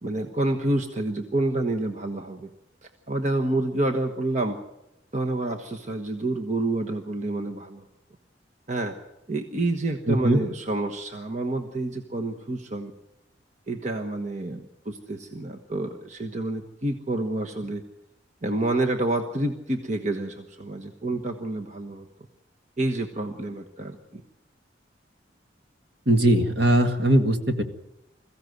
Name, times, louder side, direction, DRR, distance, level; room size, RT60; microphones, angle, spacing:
voice 1, 0.0-2.5 2.8-4.6 5.1-7.8 8.7-9.0 9.3-12.9 13.7-17.8 18.4-22.1 22.8-24.2, right 2 dB, 40° right, 3 dB, 1.2 m, -28 dB
voice 2, 10.1-10.4 26.1-27.6, right 1 dB, 60° right, 6 dB, 1.9 m, -20 dB
22.0 x 15.0 x 7.9 m, 0.89 s
head